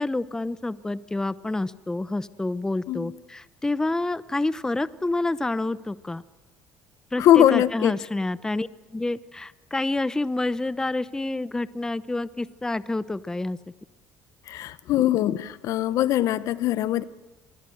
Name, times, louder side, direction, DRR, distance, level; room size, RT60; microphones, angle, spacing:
voice 1, 0.0-6.2 7.1-13.6, left 2 dB, 10° left, 16 dB, 0.7 m, -28 dB
voice 2, 7.2-8.0 14.5-17.0, left 12 dB, 65° left, 16 dB, 0.9 m, -21 dB
25.5 x 22.0 x 7.8 m, 1.2 s
cardioid pair, 100°, 6 cm